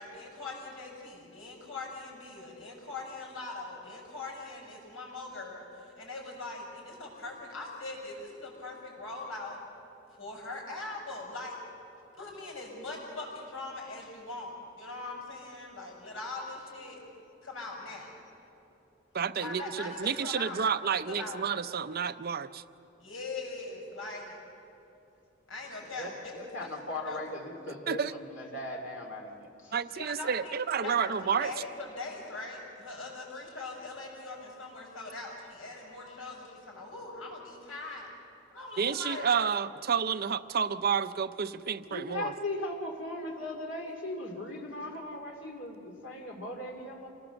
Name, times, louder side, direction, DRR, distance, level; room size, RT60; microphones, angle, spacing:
voice 1, 0.0-9.6 10.2-11.6 12.2-17.0 17.4-18.2 19.4-20.6 20.9-21.5 23.0-24.4 25.5-27.2 29.9-38.1 38.5-39.4, left 2 dB, 85° left, -1 dB, 6.0 m, -41 dB
voice 2, 19.1-22.6 27.7-28.2 29.7-31.5 38.8-42.3, right 7 dB, 50° right, 13 dB, 0.6 m, -30 dB
voice 3, 25.9-29.7 41.9-47.1, left 2 dB, 65° left, 1 dB, 2.5 m, -38 dB
27.0 x 18.5 x 6.9 m, 2.8 s
head